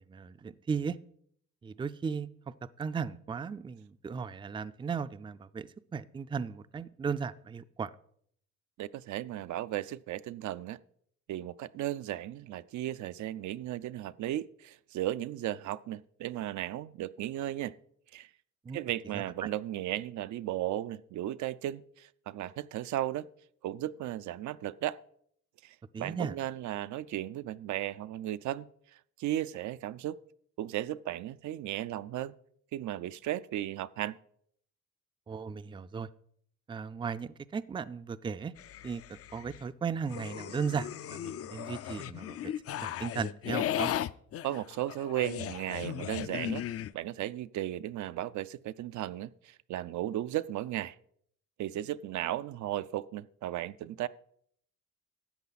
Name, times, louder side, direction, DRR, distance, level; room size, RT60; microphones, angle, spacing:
voice 1, 0.1-1.0 1.6-2.3 2.8-7.9 18.7-18.8 19.1-19.5 25.9-26.4 35.3-36.1 36.7-38.5 38.8-42.5 42.8-43.9, right 6 dB, 15° right, 15 dB, 0.4 m, -36 dB
voice 2, 8.8-10.8 11.3-17.7 18.1-18.3 18.7-23.3 23.6-25.0 25.6-28.7 29.2-30.2 30.6-32.3 32.7-34.2 44.4-46.7 46.9-51.0 51.6-54.1, right 13 dB, 70° right, 14 dB, 0.5 m, -35 dB
sound 1, 38.6-39.6 40.1-46.9, left 11 dB, 50° left, 0.5 m, -36 dB
13.0 x 8.4 x 4.0 m, 0.65 s
cardioid pair, 90°, 30 cm